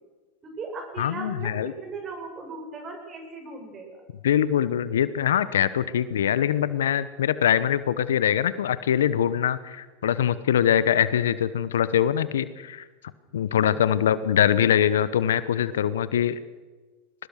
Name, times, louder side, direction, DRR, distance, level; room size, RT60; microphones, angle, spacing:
voice 1, 0.4-1.5 1.8-4.0, right 3 dB, 35° right, 3 dB, 7.4 m, -37 dB
voice 2, 1.0-1.7 4.2-12.8 13.3-16.4, left 10 dB, 80° left, 16 dB, 1.0 m, -23 dB
22.0 x 20.0 x 6.5 m, 1.3 s
hypercardioid pair, 90°, 0 cm